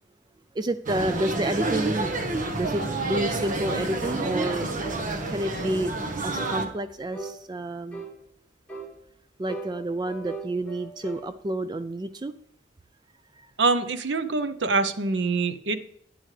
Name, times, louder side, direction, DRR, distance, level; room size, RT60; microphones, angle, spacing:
voice 1, 0.5-2.1 2.6-4.7 5.3-5.9 6.2-8.0 9.4-12.4 13.3-13.5, right 1 dB, 25° right, 12 dB, 0.3 m, -29 dB
sound 1, 0.9-6.7, right 2 dB, 45° right, 1.3 m, -29 dB
sound 2, 4.0-4.3 4.8-5.1 5.6-5.8 6.3-6.6 7.1-7.4 7.9-8.2 8.7-8.9 9.5-11.3, right 3 dB, 5° left, 3.4 m, -38 dB
voice 2, 13.6-15.9, right 3 dB, 70° right, 11 dB, 0.7 m, -25 dB
11.0 x 10.0 x 3.3 m, 0.69 s
head